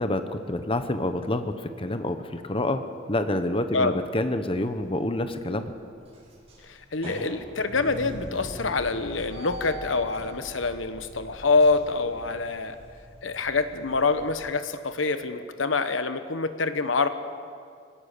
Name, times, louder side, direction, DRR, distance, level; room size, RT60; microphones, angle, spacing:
voice 1, 0.0-2.8 3.1-5.7 7.0-7.2, left 1 dB, 30° left, 9 dB, 1.0 m, -28 dB
sound 1, 4.4-4.9 5.4-5.5 5.9-14.3, equal, 35° right, 6.7 m, -42 dB
voice 2, 6.7-12.8 13.2-17.1, left 3 dB, 85° left, 10 dB, 1.2 m, -26 dB
25.5 x 17.5 x 6.8 m, 2.4 s
head